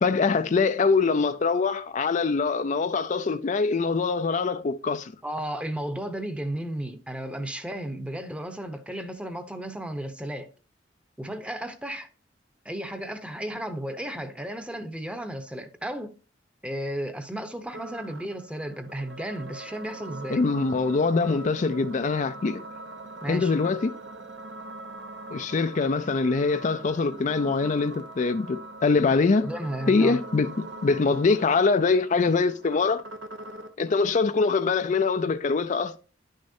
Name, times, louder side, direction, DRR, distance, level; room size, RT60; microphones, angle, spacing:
voice 1, 0.0-5.1 20.3-22.6 23.3-23.9 25.3-29.5 29.9-30.5 30.8-33.0 33.8-36.0, left 4 dB, 45° left, 0.4 m, -23 dB
voice 2, 5.2-10.5 11.2-12.1 12.6-16.1 16.6-20.4 23.2-23.5 29.4-30.2, right 1 dB, 5° right, 0.9 m, -34 dB
sound 1, 17.7-33.7, right 1 dB, 75° right, 1.0 m, -42 dB
11.0 x 6.4 x 2.7 m
head